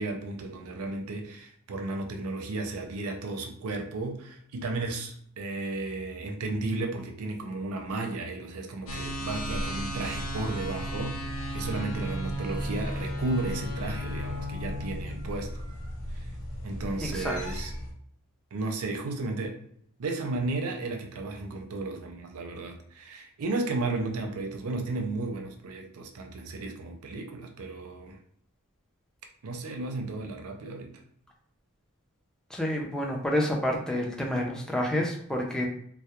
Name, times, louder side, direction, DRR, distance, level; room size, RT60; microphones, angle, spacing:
voice 1, 0.0-15.6 16.1-16.3 16.6-17.7 18.5-19.6 20.0-28.2 29.4-30.9, right 2 dB, 70° right, 4 dB, 0.5 m, -34 dB
sound 1, 8.9-17.9, equal, 65° left, 0.5 m, -34 dB
voice 2, 17.0-17.4 32.5-35.6, left 1 dB, 5° left, -1 dB, 0.4 m, -29 dB
2.2 x 2.1 x 2.9 m, 0.65 s
head